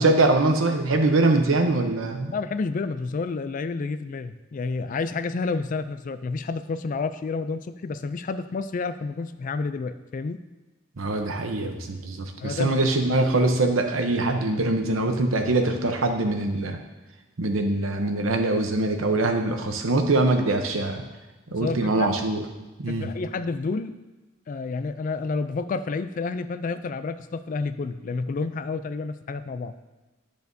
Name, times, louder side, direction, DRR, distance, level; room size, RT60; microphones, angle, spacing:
voice 1, 0.0-2.3 11.0-16.8 17.4-21.0 21.5-22.5 22.8-23.1, right 2 dB, 80° right, 5 dB, 0.8 m, -23 dB
voice 2, 2.3-10.4 12.4-12.8 21.5-22.1 22.9-23.9 24.5-29.7, left 4 dB, 40° left, 12 dB, 0.3 m, -30 dB
10.5 x 6.6 x 2.7 m, 1.1 s
head